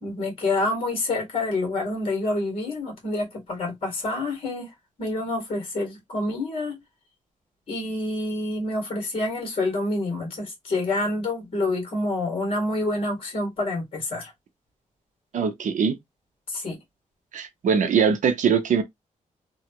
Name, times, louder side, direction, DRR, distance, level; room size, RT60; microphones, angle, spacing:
voice 1, 0.0-4.7 5.0-6.8 7.7-14.3 16.5-16.8, left 2 dB, 45° left, 1.6 m, -27 dB
voice 2, 15.3-15.9 17.3-18.8, right 6 dB, 70° right, 0.6 m, -22 dB
2.9 x 2.4 x 2.8 m
wide cardioid pair, 155°, 13 cm